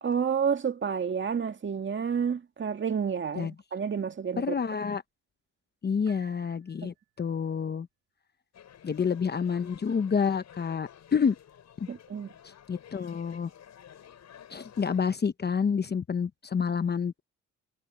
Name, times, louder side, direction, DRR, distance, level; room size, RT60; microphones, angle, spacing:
voice 1, 0.0-4.5 11.9-12.3, right 7 dB, 40° right, 2.1 m, -30 dB
voice 2, 4.4-5.0 5.8-7.9 8.8-11.4 11.8-11.9 12.7-13.5 14.5-17.2, left 6 dB, 35° left, 0.9 m, -28 dB
Piano, 6.1-7.3, right 17 dB, 75° right, 4.4 m, -58 dB
sound 1, 8.5-15.1, left 9 dB, 65° left, 7.0 m, -52 dB
cardioid pair, 90°, 30 cm